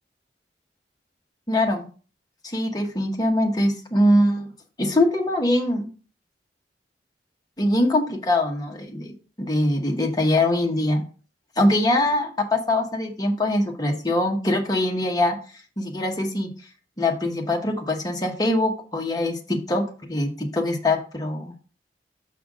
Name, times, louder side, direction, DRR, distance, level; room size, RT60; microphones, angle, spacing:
voice 1, 1.5-1.9 2.4-4.5 4.8-5.9 7.6-11.0 11.6-15.4 15.8-16.5 17.0-21.5, left 1 dB, 20° left, 2 dB, 1.1 m, -23 dB
6.4 x 5.6 x 3.7 m, 0.39 s
head